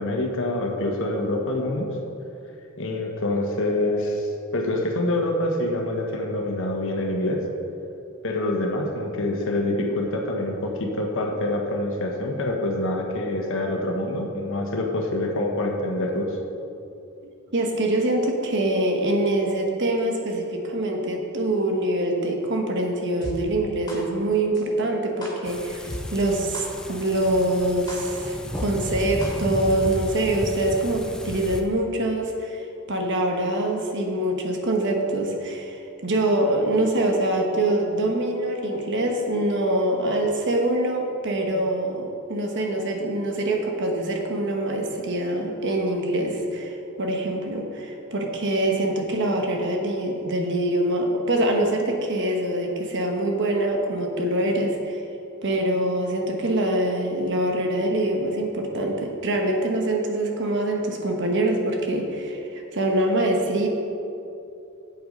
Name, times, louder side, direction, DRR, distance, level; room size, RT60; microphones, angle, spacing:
voice 1, 0.0-2.0 2.8-7.4 8.2-16.4, left 1 dB, 65° left, 1 dB, 1.3 m, -26 dB
voice 2, 17.5-55.0 55.4-63.7, right 1 dB, 55° right, 2 dB, 1.2 m, -24 dB
sound 1, 23.2-23.3 23.9-24.0 24.5-24.6 25.2-25.3 25.9-26.0 26.5-26.6 27.2-27.3 27.9-28.0 28.5-28.7 29.2-29.3 29.9-30.0, left 1 dB, 20° left, 2.4 m, -35 dB
sound 2, 25.5-31.6, equal, 5° left, 0.5 m, -34 dB
8.2 x 8.1 x 5.3 m, 2.7 s
head